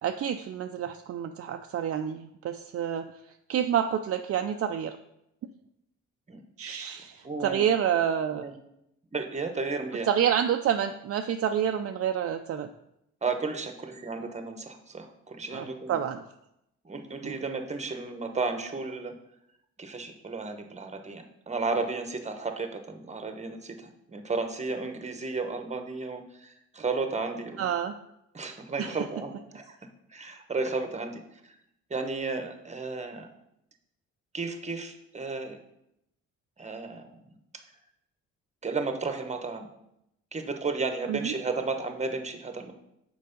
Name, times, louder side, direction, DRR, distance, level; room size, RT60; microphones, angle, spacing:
voice 1, 0.0-3.1 3.5-5.0 6.6-8.4 10.1-12.7 15.5-16.2 17.2-17.4 27.6-27.9 28.8-28.9 41.1-41.3, right 9 dB, 50° right, 6 dB, 0.5 m, -28 dB
voice 2, 6.3-6.8 7.2-7.6 8.3-8.5 9.1-10.1 13.2-16.0 16.8-19.2 19.8-27.7 28.3-29.8 30.1-31.5 31.9-33.3 34.3-35.6 36.6-37.2 38.6-39.7 40.3-42.7, right 4 dB, 20° right, 6 dB, 1.0 m, -33 dB
6.6 x 4.7 x 5.2 m, 0.81 s
cardioid pair, 90°, 30 cm